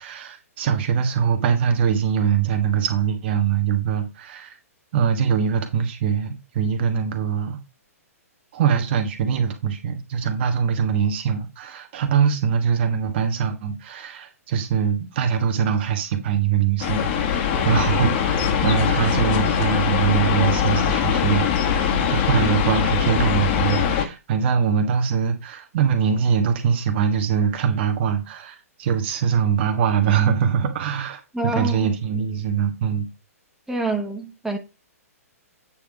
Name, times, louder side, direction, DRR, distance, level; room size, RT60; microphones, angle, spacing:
voice 1, 0.0-4.6 4.9-7.6 8.5-33.1, right 7 dB, 45° right, 1.4 m, -23 dB
sound 1, 16.8-24.1, left 7 dB, 40° left, 1.5 m, -22 dB
voice 2, 31.3-31.9 33.7-34.6, right 2 dB, 5° right, 1.3 m, -26 dB
8.8 x 3.5 x 4.9 m
figure-of-eight pair, 120°, 8 cm